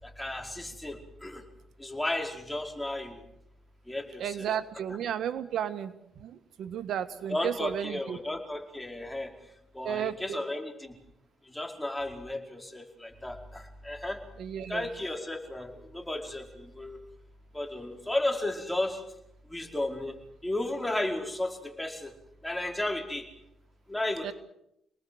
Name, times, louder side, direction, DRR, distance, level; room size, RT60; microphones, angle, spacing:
voice 1, 0.0-1.4 1.8-3.2 3.9-4.5 7.3-9.3 9.7-11.0 11.4-14.2 14.7-17.0 17.5-19.0 19.5-20.2 20.4-22.1 22.4-23.3 23.9-24.3, left 1 dB, 10° left, 3 dB, 4.8 m, -34 dB
voice 2, 4.2-5.9 6.2-8.2 9.8-10.4 14.4-14.9 24.2-24.3, right 9 dB, 70° right, 11 dB, 1.5 m, -33 dB
28.5 x 19.5 x 7.9 m, 0.80 s
cardioid pair, 90°, 0 cm